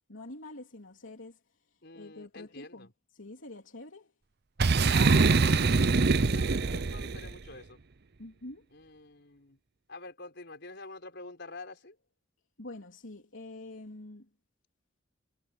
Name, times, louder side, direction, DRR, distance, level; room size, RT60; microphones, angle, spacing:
voice 1, 0.1-1.4 1.9-2.9 3.1-4.1 8.2-8.7 12.6-14.3, left 2 dB, 75° left, 3.5 m, -46 dB
voice 2, 1.8-2.9 4.7-7.8 8.7-9.6 9.9-12.0, left 2 dB, 60° left, 5.3 m, -47 dB
Boom, 4.6-7.3, right 4 dB, 55° right, 0.7 m, -24 dB
head